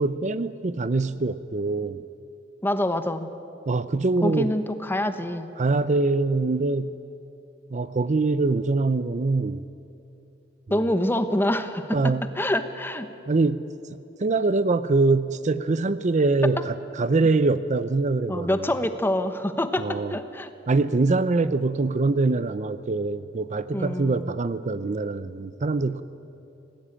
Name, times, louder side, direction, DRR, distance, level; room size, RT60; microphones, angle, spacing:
voice 1, 0.0-2.0 3.7-4.5 5.6-6.9 7.7-9.6 10.7-10.8 11.9-12.2 13.3-13.6 13.9-18.6 19.8-20.2 20.7-26.0, right 3 dB, 40° right, 13 dB, 0.5 m, -24 dB
voice 2, 2.6-3.3 4.2-5.5 10.7-13.1 18.3-20.5 23.7-24.3, left 1 dB, 10° left, 9 dB, 1.1 m, -26 dB
26.5 x 18.5 x 8.8 m, 2.9 s
head